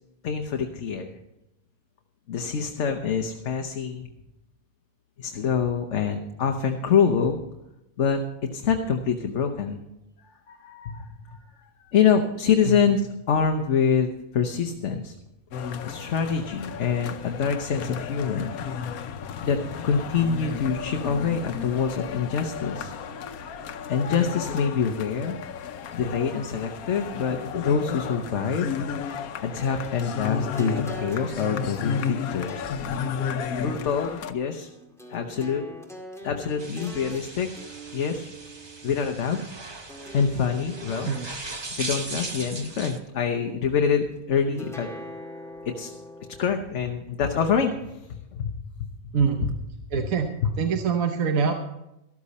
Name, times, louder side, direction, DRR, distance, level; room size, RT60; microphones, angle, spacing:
voice 1, 0.2-1.1 2.3-4.1 5.2-7.4 8.0-8.2 8.5-9.8 10.2-11.4 11.9-15.1 15.8-18.5 19.4-19.6 19.8-22.9 23.9-25.4 25.9-28.7 29.4-32.6 33.5-34.7 35.1-35.6 36.2-37.5 37.9-38.3 38.8-39.4 40.1-41.1 41.7-44.9 45.6-45.9 46.4-48.5 49.9-50.0 50.4-50.5, left 6 dB, 60° left, 4 dB, 1.2 m, -25 dB
sound 1, 15.5-34.3, left 7 dB, 90° left, 1.3 m, -33 dB
sound 2, 29.8-39.3 39.9-41.5 41.9-43.0 44.6-46.5, equal, ahead, 2.0 m, -44 dB
sound 3, 36.6-43.0, right 3 dB, 25° right, 0.8 m, -38 dB
voice 2, 49.1-49.5 49.9-50.3 50.6-51.5, right 6 dB, 75° right, 4 dB, 1.4 m, -24 dB
13.5 x 13.5 x 4.2 m, 0.92 s
omnidirectional pair, 1.5 m